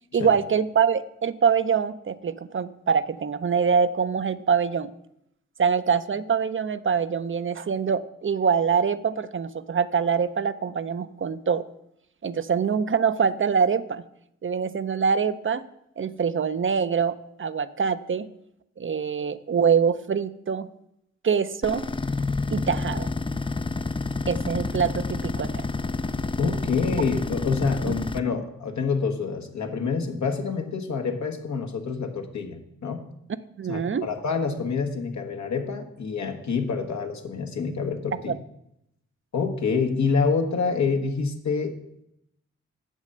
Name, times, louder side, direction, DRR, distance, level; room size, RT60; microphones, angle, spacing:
voice 1, 0.1-4.9 5.6-11.6 12.2-14.0 14.4-15.6 16.0-18.3 18.8-20.7 21.2-21.8 22.5-23.1 24.3-25.5 27.8-27.9 33.6-34.1 38.3-38.4, right 6 dB, 45° right, 13 dB, 0.6 m, -24 dB
sound 1, 21.6-28.2, left 3 dB, 20° left, 0.5 m, -29 dB
voice 2, 26.4-33.0 33.7-38.3 39.3-41.8, left 5 dB, 70° left, 4 dB, 1.4 m, -27 dB
7.4 x 6.2 x 6.6 m, 0.78 s
supercardioid pair, 40°, 29 cm